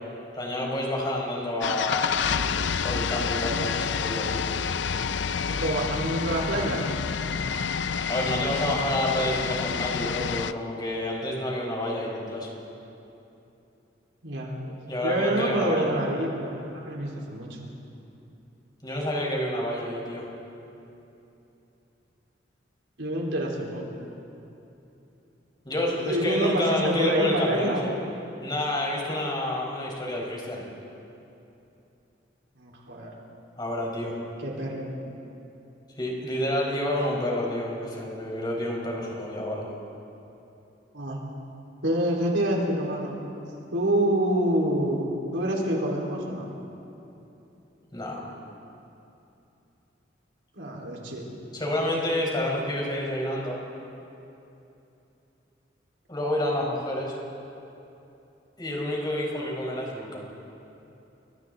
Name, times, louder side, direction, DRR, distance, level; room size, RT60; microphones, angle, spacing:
voice 1, 0.3-2.2 2.8-4.4 8.1-12.5 14.6-15.9 18.8-20.3 25.6-27.9 28.4-30.6 33.6-34.1 36.0-39.7 47.9-48.2 51.5-53.6 56.1-57.1 58.6-60.2, left 1 dB, 25° left, -2 dB, 4.7 m, -29 dB
sound 1, 1.6-10.5, left 6 dB, 70° left, 0.5 m, -28 dB
voice 2, 5.5-6.8 14.2-14.6 15.0-17.7 23.0-23.8 26.0-27.8 32.6-33.1 34.4-34.9 40.9-41.2 41.8-43.2 43.7-46.5 50.5-51.4, right 1 dB, 85° right, -2 dB, 4.2 m, -27 dB
29.5 x 23.5 x 3.9 m, 2.9 s
head